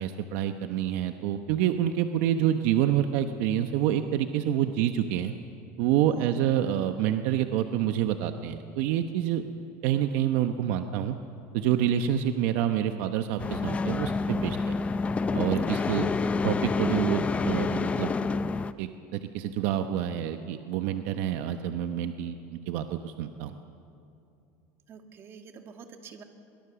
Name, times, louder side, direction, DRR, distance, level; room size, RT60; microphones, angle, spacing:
voice 1, 0.0-5.3 5.8-9.4 9.8-11.1 11.5-14.7 15.3-16.1 16.4-18.1 18.8-23.5, right 10 dB, 70° right, 7 dB, 1.0 m, -27 dB
voice 2, 6.1-6.4 15.5-16.2 24.9-26.2, right 6 dB, 35° right, 5 dB, 2.0 m, -48 dB
sound 1, 13.4-18.7, left 4 dB, 20° left, 0.5 m, -28 dB
23.0 x 22.5 x 7.0 m, 2.6 s
cardioid pair, 140°, 7 cm